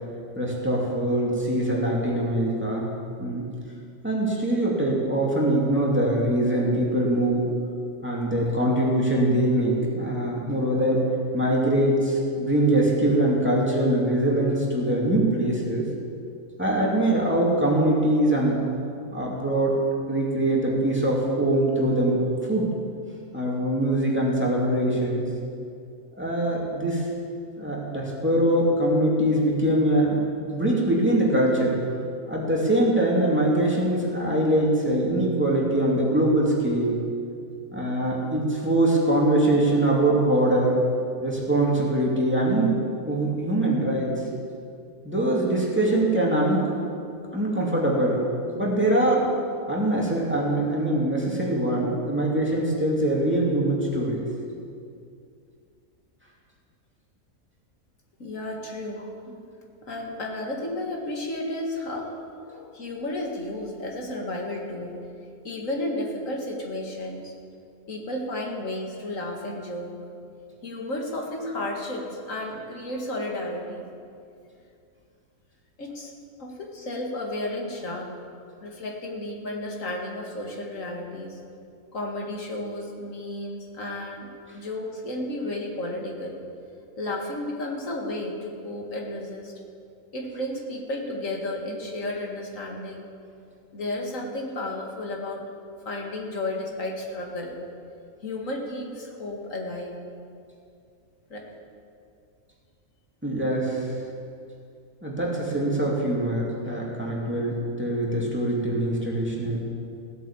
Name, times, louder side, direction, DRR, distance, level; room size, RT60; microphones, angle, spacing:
voice 1, 0.4-2.9 3.2-3.5 4.0-7.5 8.0-11.0 11.3-15.9 16.6-18.6 19.1-19.7 20.1-22.2 22.5-22.7 23.3-25.3 26.2-27.1 27.6-30.3 30.5-31.8 32.3-36.9 37.7-40.8 41.2-44.2 45.0-47.0 47.3-48.2 48.5-49.3 49.7-54.2 103.2-103.9 105.0-109.6, right 1 dB, 10° right, -4 dB, 2.6 m, -23 dB
voice 2, 58.2-59.0 59.8-62.1 62.5-64.9 65.2-67.3 67.9-69.9 70.6-73.9 75.8-76.1 76.4-78.2 78.6-81.4 81.9-86.4 87.0-89.5 90.1-93.1 93.7-95.5 95.9-97.6 98.2-100.0 101.3-101.4, left 1 dB, 65° left, 0 dB, 2.3 m, -33 dB
17.0 x 8.3 x 7.3 m, 2.4 s
omnidirectional pair, 1.5 m